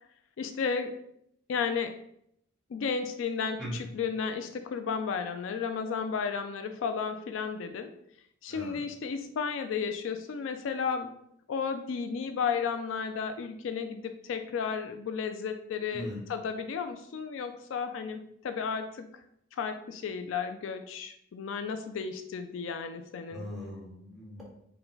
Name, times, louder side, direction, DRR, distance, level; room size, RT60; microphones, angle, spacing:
voice 1, 0.4-0.9 1.5-1.9 2.7-7.9 8.4-11.1 11.5-19.1 19.6-23.4, left 6 dB, 70° left, 8 dB, 0.4 m, -33 dB
voice 2, 8.5-8.8 15.9-16.2 23.3-24.4, left 1 dB, ahead, -5 dB, 1.2 m, -40 dB
4.5 x 2.2 x 3.9 m, 0.72 s
head